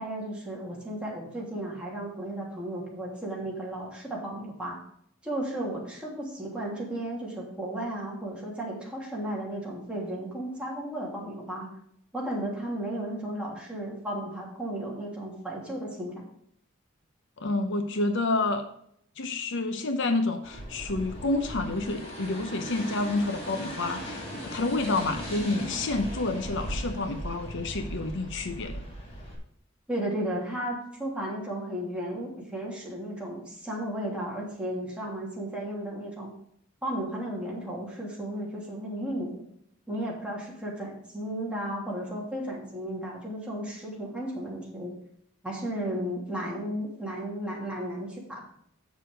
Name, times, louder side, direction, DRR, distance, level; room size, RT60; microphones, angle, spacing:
voice 1, 0.0-4.8 5.2-11.7 12.1-16.3 29.9-36.3 36.8-39.4 39.9-44.9 45.4-48.4, right 1 dB, 5° right, -4 dB, 3.0 m, -34 dB
voice 2, 17.4-18.6 19.2-28.8, left 2 dB, 65° left, 7 dB, 0.8 m, -29 dB
sound 1, 20.4-29.4, equal, 30° left, 2.7 m, -38 dB
8.4 x 6.7 x 5.1 m, 0.69 s
head